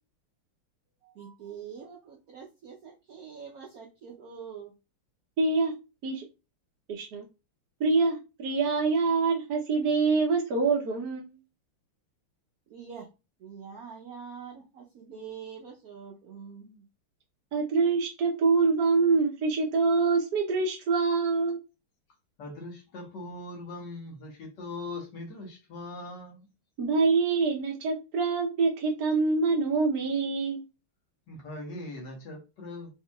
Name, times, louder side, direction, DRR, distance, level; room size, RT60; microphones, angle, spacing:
voice 1, 1.0-4.7 12.7-13.1 13.4-16.8, right 7 dB, 85° right, -1 dB, 0.7 m, -44 dB
voice 2, 5.4-5.7 6.0-6.2 6.9-7.2 7.8-11.3 17.5-21.6 26.8-30.6, right 4 dB, 60° right, -1 dB, 1.2 m, -25 dB
voice 3, 22.4-26.5 31.3-32.9, left 2 dB, 55° left, 0 dB, 1.9 m, -40 dB
4.5 x 4.1 x 2.3 m, 0.28 s
omnidirectional pair, 2.4 m